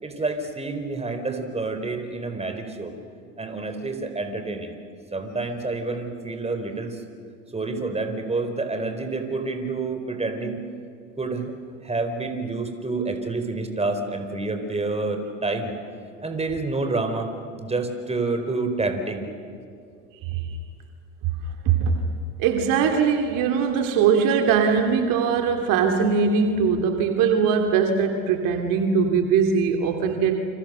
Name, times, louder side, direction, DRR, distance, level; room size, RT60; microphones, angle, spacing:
voice 1, 0.0-2.9 3.4-4.7 5.1-7.0 7.5-10.6 11.2-11.5 11.8-15.7 16.2-19.2, right 3 dB, 15° right, 7 dB, 4.6 m, -28 dB
voice 2, 20.2-20.6 21.6-22.0 22.4-30.3, right 6 dB, 60° right, 4 dB, 2.7 m, -21 dB
29.0 x 27.0 x 6.8 m, 2.3 s
hypercardioid pair, 70°, 37 cm